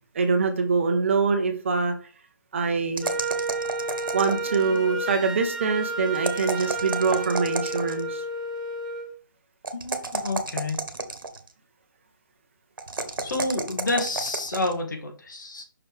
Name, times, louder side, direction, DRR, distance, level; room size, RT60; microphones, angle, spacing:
voice 1, 0.1-1.9 2.5-3.1 4.1-8.2, right 4 dB, 35° right, 6 dB, 0.9 m, -24 dB
Wind instrument woodwind instrument, 3.0-9.1, right 2 dB, ahead, 0.4 m, -31 dB
sound 1, 3.0-4.8 6.1-8.1 9.6-11.5 12.8-14.7, right 3 dB, 85° right, 1.2 m, -31 dB
voice 2, 9.7-10.9 13.2-15.6, left 2 dB, 65° left, 2 dB, 2.2 m, -29 dB
5.9 x 5.1 x 3.4 m, 0.40 s
hypercardioid pair, 165°, 11 cm